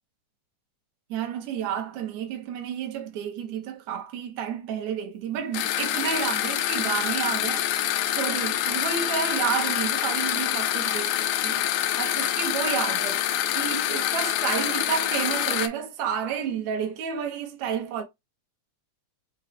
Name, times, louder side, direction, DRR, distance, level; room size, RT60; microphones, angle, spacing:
voice 1, 1.1-7.7 8.1-11.7 12.0-18.0, right 8 dB, 70° right, 2.2 m, -31 dB
sound 1, 5.5-15.7, left 12 dB, 80° left, 2.0 m, -26 dB
5.6 x 2.3 x 3.5 m
omnidirectional pair, 3.5 m